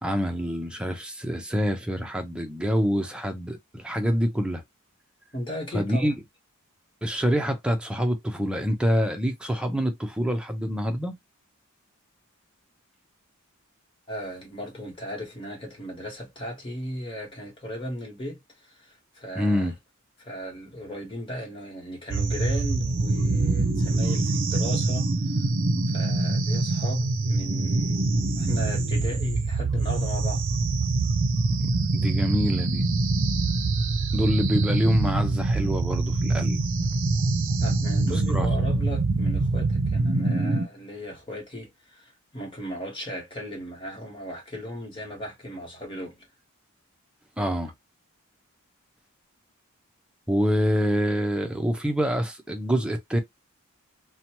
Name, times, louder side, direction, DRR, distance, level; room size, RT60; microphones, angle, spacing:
voice 1, 0.0-4.6 5.7-6.2 7.0-11.2 19.4-19.7 31.6-31.7 31.9-32.8 34.1-36.6 38.1-38.5 47.4-47.7 50.3-53.2, equal, 5° right, 0.6 m, -26 dB
voice 2, 5.3-6.1 14.1-19.7 20.2-25.1 25.9-28.0 28.3-30.4 37.6-46.3, equal, 25° left, 1.3 m, -37 dB
sound 1, 22.1-40.7, right 3 dB, 60° right, 0.6 m, -24 dB
2.8 x 2.2 x 2.9 m
head